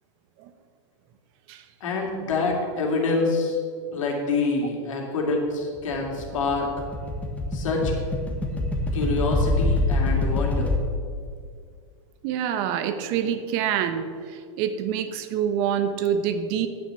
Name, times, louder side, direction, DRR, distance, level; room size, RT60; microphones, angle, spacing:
voice 1, 1.8-3.6 3.9-6.7 7.5-7.9 8.9-10.7, left 3 dB, 80° left, 0 dB, 2.6 m, -26 dB
sound 1, 5.7-10.8, left 2 dB, 10° left, 1.2 m, -25 dB
voice 2, 12.2-16.7, right 8 dB, 50° right, 9 dB, 0.9 m, -26 dB
9.1 x 6.5 x 6.9 m, 2.2 s
hypercardioid pair, 130°, 16 cm